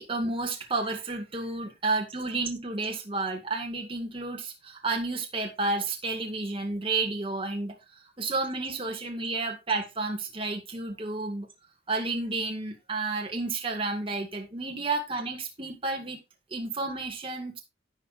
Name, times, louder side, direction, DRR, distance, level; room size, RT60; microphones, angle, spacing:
voice 1, 0.0-11.5 11.9-16.2 16.5-17.6, right 3 dB, 30° right, 2 dB, 1.9 m, -31 dB
11.5 x 9.6 x 2.5 m, 0.23 s
head